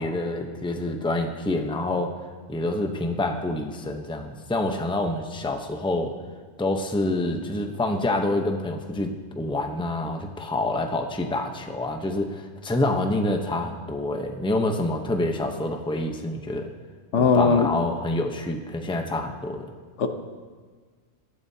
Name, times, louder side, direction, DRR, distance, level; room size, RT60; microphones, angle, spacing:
voice 1, 0.0-2.1 2.5-6.2 6.6-16.7 17.1-19.7, left 2 dB, 5° left, 4 dB, 0.7 m, -27 dB
voice 2, 17.1-17.7 20.0-20.1, left 5 dB, 80° left, 6 dB, 1.3 m, -19 dB
18.0 x 12.5 x 2.8 m, 1.5 s
omnidirectional pair, 1.2 m